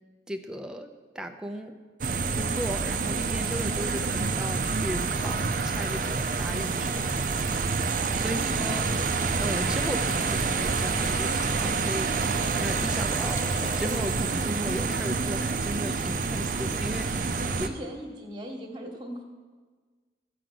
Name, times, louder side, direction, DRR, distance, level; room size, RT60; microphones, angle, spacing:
voice 1, 0.3-1.8 2.3-7.2 8.2-8.9 9.4-17.7, equal, 5° right, 5 dB, 0.6 m, -36 dB
sound 1, 2.0-17.7, right 4 dB, 50° right, 0.6 m, -28 dB
voice 2, 8.3-9.0 15.8-16.0 17.5-19.2, equal, 25° right, 2 dB, 1.4 m, -39 dB
sound 2, 8.7-14.0, left 2 dB, 20° left, 0.9 m, -43 dB
14.5 x 5.0 x 7.8 m, 1.5 s
head